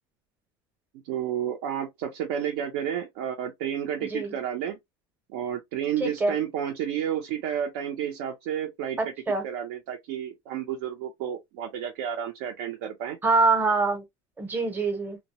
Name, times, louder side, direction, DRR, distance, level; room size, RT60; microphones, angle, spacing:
voice 1, 1.1-4.8 5.3-9.1 9.4-13.2, right 9 dB, 75° right, 0.6 m, -31 dB
voice 2, 4.0-4.3 6.0-6.3 9.0-9.4 13.2-14.0 14.4-15.2, right 3 dB, 15° right, 0.7 m, -24 dB
2.2 x 2.0 x 2.7 m
cardioid pair, 160°, 12 cm